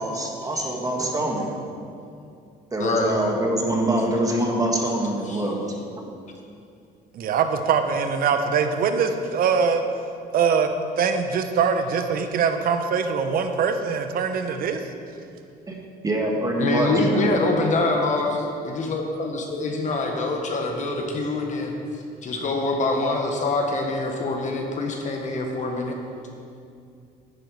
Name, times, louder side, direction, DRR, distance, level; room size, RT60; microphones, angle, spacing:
voice 1, 0.0-1.6 2.7-5.7 15.7-15.8 16.0-17.3, right 1 dB, 20° right, 0 dB, 1.7 m, -24 dB
voice 2, 2.8-3.1 5.2-5.4 16.6-18.4 18.6-21.7 22.2-26.0, left 2 dB, 45° left, 2 dB, 1.5 m, -25 dB
voice 3, 7.1-9.8 10.3-10.7 11.0-14.8, right 6 dB, 60° right, 7 dB, 0.9 m, -22 dB
10.5 x 9.1 x 4.8 m, 2.4 s
cardioid pair, 110°, 17 cm